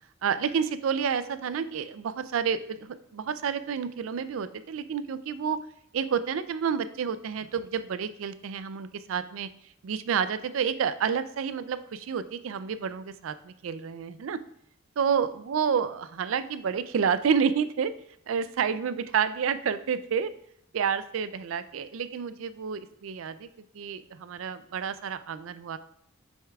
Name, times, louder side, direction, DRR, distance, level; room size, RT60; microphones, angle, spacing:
voice 1, 0.2-5.6 5.9-9.5 9.8-14.4 15.0-17.9 18.3-20.3 20.7-25.8, right 7 dB, 75° right, 13 dB, 0.4 m, -29 dB
8.0 x 6.4 x 2.3 m, 0.71 s
head